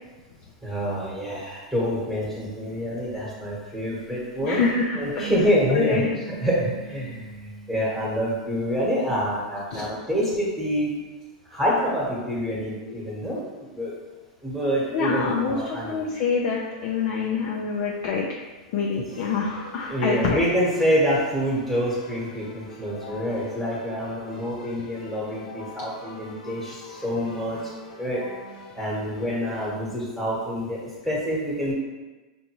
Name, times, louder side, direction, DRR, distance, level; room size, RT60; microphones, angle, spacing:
voice 1, 0.6-7.3 7.7-10.9 11.5-13.9 14.4-16.0 19.9-27.6 28.0-28.2 28.7-30.8 31.0-31.7, equal, 5° right, -7 dB, 1.2 m, -26 dB
voice 2, 4.4-5.3 5.7-6.1 9.7-9.9 14.9-18.3 18.7-20.4, left 5 dB, 55° left, -2 dB, 0.6 m, -26 dB
Bass guitar, 5.2-8.9, right 4 dB, 85° right, 0.5 m, -39 dB
Keyboard (musical), 19.1-29.7, left 3 dB, 85° left, 1.0 m, -45 dB
5.4 x 2.6 x 3.0 m, 1.2 s
hypercardioid pair, 120°, 4 cm